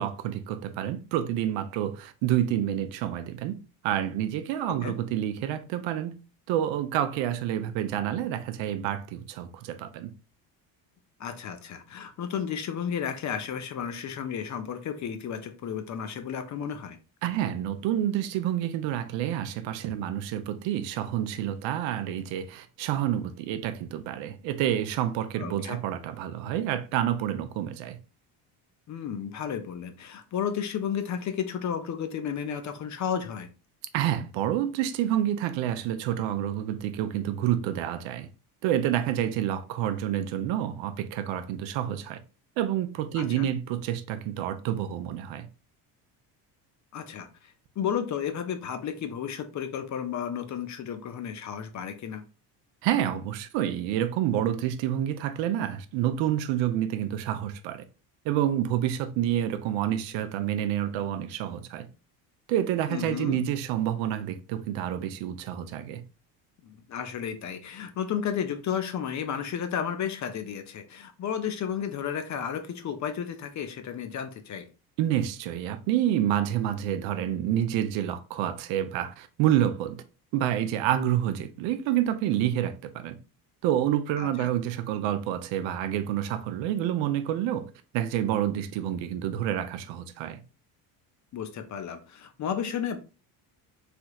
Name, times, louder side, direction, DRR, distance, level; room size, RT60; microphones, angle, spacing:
voice 1, 0.0-3.5 3.8-6.2 6.5-10.1 17.2-28.0 33.9-38.3 38.6-42.2 42.6-45.5 52.8-57.8 58.2-61.9 62.5-66.0 75.0-80.0 80.3-83.2 83.6-90.4, right 11 dB, 70° right, 0.6 m, -28 dB
voice 2, 11.2-17.0 25.4-25.8 28.9-33.5 43.2-43.5 46.9-52.2 62.9-63.4 66.6-74.7 84.2-84.5 91.3-93.0, left 8 dB, 40° left, 0.5 m, -33 dB
3.3 x 2.8 x 2.3 m
supercardioid pair, 90°, 48 cm